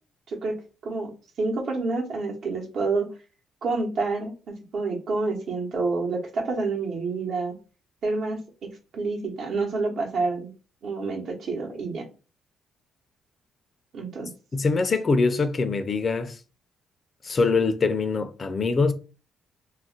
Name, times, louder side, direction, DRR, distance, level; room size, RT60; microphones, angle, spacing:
voice 1, 1.4-3.1 3.6-7.5 8.0-8.4 8.9-10.5 10.8-12.0 13.9-14.3, right 3 dB, 65° right, 0.9 m, -28 dB
voice 2, 14.5-16.4 17.2-18.9, left 4 dB, 40° left, 0.4 m, -23 dB
2.4 x 2.1 x 3.8 m
cardioid pair, 90°, 0 cm